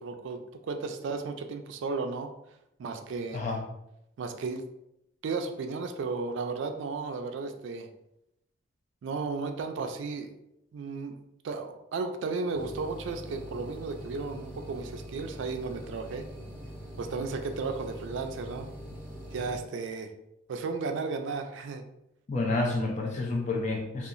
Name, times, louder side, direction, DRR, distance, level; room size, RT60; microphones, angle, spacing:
voice 1, 0.0-2.3 2.8-3.4 4.2-4.7 5.2-7.9 9.0-10.3 10.7-11.2 11.4-16.2 17.0-18.7 19.3-20.1 20.5-21.8, right 4 dB, 65° right, 6 dB, 0.3 m, -34 dB
sound 1, 12.5-19.6, equal, 5° right, 0.6 m, -43 dB
voice 2, 22.3-24.1, left 2 dB, 35° left, 0 dB, 0.5 m, -29 dB
2.8 x 2.3 x 2.5 m, 0.82 s
head